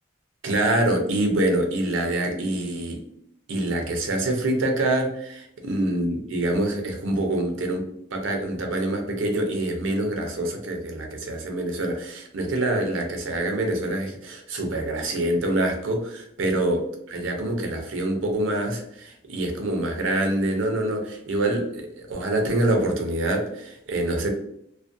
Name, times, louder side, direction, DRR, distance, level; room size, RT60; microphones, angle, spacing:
voice 1, 0.4-3.0 3.5-24.3, right 1 dB, 80° right, 2 dB, 0.6 m, -25 dB
2.4 x 2.2 x 2.5 m, 0.75 s
head